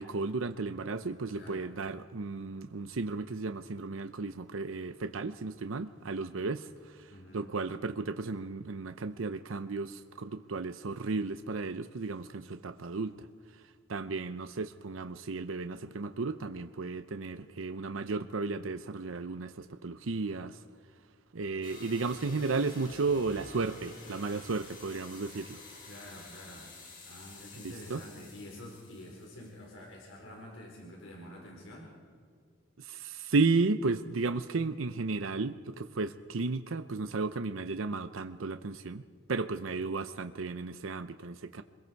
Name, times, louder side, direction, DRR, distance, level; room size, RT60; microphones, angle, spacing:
voice 1, 0.0-13.3 13.5-13.6 13.9-20.6 21.3-25.6 27.6-28.0 32.8-39.0 39.3-41.6, right 3 dB, 90° right, 10 dB, 0.7 m, -34 dB
voice 2, 1.3-1.7 7.1-7.5 25.8-26.7 27.0-31.9, left 1 dB, 80° left, -1 dB, 4.3 m, -48 dB
sound 1, 21.6-29.9, left 2 dB, 45° left, 4.9 m, -50 dB
26.0 x 22.0 x 4.7 m, 2.1 s
head